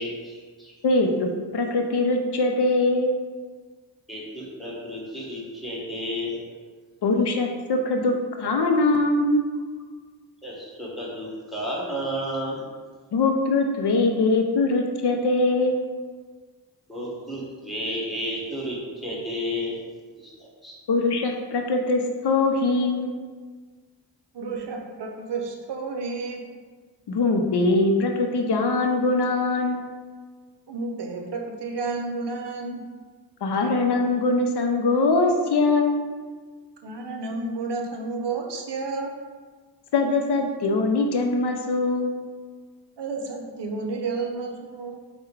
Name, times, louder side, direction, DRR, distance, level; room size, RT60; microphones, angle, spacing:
voice 1, 0.0-0.8 4.1-6.4 10.4-12.7 16.9-19.8 20.2-20.7, equal, ahead, -5 dB, 1.4 m, -32 dB
voice 2, 0.8-3.1 7.0-9.4 13.1-15.8 20.9-23.1 27.1-29.8 33.4-36.0 39.9-42.1, left 2 dB, 65° left, 3 dB, 0.6 m, -22 dB
voice 3, 24.3-26.4 30.7-32.8 36.8-39.1 43.0-45.0, right 3 dB, 70° right, 2 dB, 0.7 m, -31 dB
4.7 x 2.2 x 4.5 m, 1.5 s
cardioid pair, 65°, 43 cm